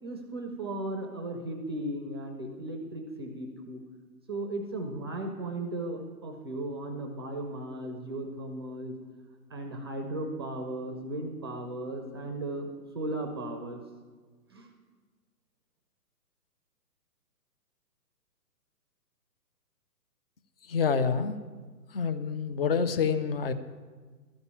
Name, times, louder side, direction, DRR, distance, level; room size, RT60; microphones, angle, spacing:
voice 1, 0.0-3.8 4.3-8.9 9.5-12.7 12.9-13.8 14.5-14.7, right 1 dB, 15° right, 5 dB, 0.5 m, -36 dB
voice 2, 20.7-21.4 21.9-23.5, left 5 dB, 40° left, 11 dB, 0.6 m, -27 dB
13.0 x 5.3 x 8.5 m, 1.4 s
hypercardioid pair, 140°, 49 cm